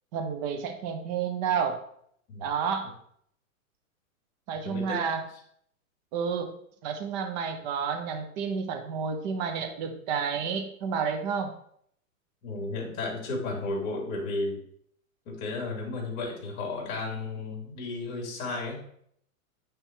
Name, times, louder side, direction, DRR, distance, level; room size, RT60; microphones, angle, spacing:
voice 1, 0.1-1.8 2.4-2.9 4.5-5.2 6.1-6.5 6.8-11.5, right 6 dB, 30° right, 6 dB, 0.9 m, -30 dB
voice 2, 4.6-5.0 12.4-14.6 15.2-18.8, left 3 dB, 35° left, -1 dB, 3.0 m, -33 dB
9.0 x 3.5 x 4.6 m, 0.67 s
hypercardioid pair, 155°, 41 cm